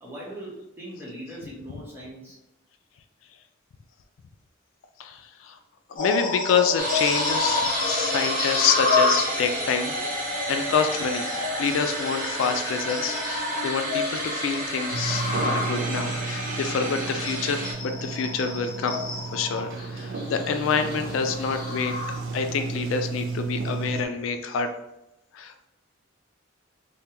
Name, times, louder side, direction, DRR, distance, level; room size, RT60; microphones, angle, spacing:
voice 1, 0.0-2.4, right 1 dB, 10° right, -6 dB, 1.0 m, -40 dB
voice 2, 5.0-5.6 5.9-11.3 11.6-19.0 19.3-21.9 22.3-24.7 25.3-25.7, left 6 dB, 80° left, 7 dB, 0.3 m, -27 dB
sound 1, 5.9-22.6 23.1-23.3 23.8-24.0, left 3 dB, 45° left, 0.8 m, -30 dB
sound 2, 6.8-17.7, right 2 dB, 40° right, 0.8 m, -32 dB
Sliding door, 14.9-24.1, right 4 dB, 70° right, 0.4 m, -33 dB
3.4 x 2.2 x 2.8 m, 0.89 s
head